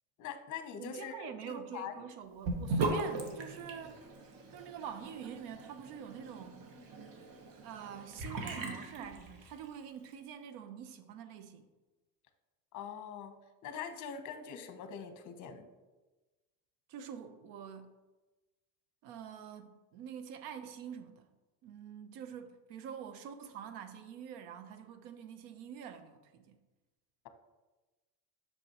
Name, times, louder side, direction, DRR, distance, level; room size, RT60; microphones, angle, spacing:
voice 1, 0.2-2.1 12.7-15.7, left 7 dB, 50° left, 0.9 m, -43 dB
voice 2, 0.8-4.0 4.5-6.7 7.6-11.6 16.9-17.9 19.0-21.3 21.6-26.5, right 8 dB, 80° right, 0.9 m, -46 dB
Sink (filling or washing) / Bathtub (filling or washing), 2.4-9.8, right 2 dB, 55° right, 1.2 m, -39 dB
7.9 x 6.0 x 3.0 m
cardioid pair, 135°, 40 cm